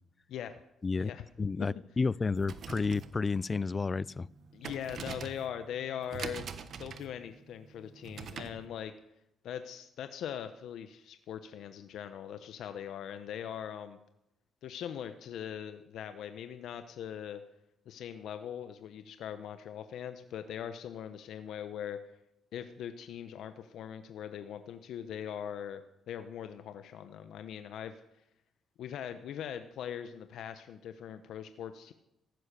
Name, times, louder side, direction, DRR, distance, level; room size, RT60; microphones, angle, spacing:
voice 1, 0.3-0.6 1.0-1.2 4.5-6.5 6.8-8.9 9.4-14.0 14.6-17.4 17.9-22.0 22.5-28.0 28.8-31.9, left 9 dB, 75° left, 10 dB, 0.9 m, -41 dB
voice 2, 1.4-4.3, left 4 dB, 30° left, 23 dB, 0.4 m, -31 dB
sound 1, 2.3-8.7, right 6 dB, 60° right, 1.4 m, -45 dB
14.5 x 11.0 x 6.8 m, 0.85 s
cardioid pair, 90°, 0 cm